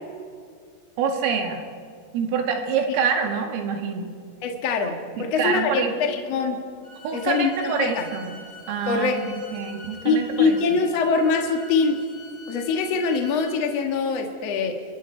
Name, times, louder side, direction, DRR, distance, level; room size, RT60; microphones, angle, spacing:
voice 1, 1.0-1.6 2.1-4.1 5.2-5.9 7.0-8.3 8.7-10.6, right 6 dB, 80° right, 3 dB, 4.6 m, -26 dB
voice 2, 4.4-6.6 7.1-8.1 8.9-9.2 10.0-12.0 12.5-14.8, left 4 dB, 80° left, 3 dB, 1.4 m, -23 dB
Bowed string instrument, 6.8-13.6, left 2 dB, 60° right, 10.0 m, -44 dB
29.5 x 22.5 x 4.6 m, 2.2 s
omnidirectional pair, 6.0 m